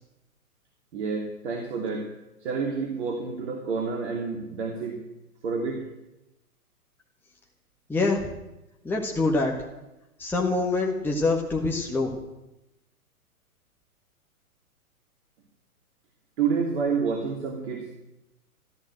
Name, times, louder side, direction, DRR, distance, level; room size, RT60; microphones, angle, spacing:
voice 1, 0.9-2.1 2.4-5.0 5.4-5.8 16.4-17.9, right 5 dB, 50° right, 2 dB, 2.8 m, -29 dB
voice 2, 7.9-8.3 8.8-9.5 10.2-12.1, left 3 dB, 5° left, -1 dB, 1.7 m, -25 dB
14.0 x 13.5 x 7.7 m, 0.94 s
figure-of-eight pair, 120°, 44 cm